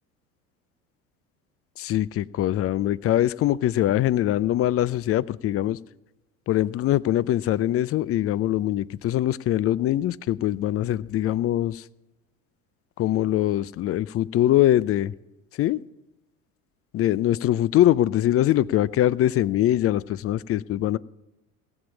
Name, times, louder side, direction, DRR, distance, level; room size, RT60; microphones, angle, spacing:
voice 1, 1.8-5.8 6.5-11.8 13.0-15.1 15.6-15.8 16.9-21.0, left 13 dB, 35° left, 22 dB, 0.5 m, -23 dB
17.5 x 7.2 x 8.3 m, 0.98 s
hypercardioid pair, 65°, 40 cm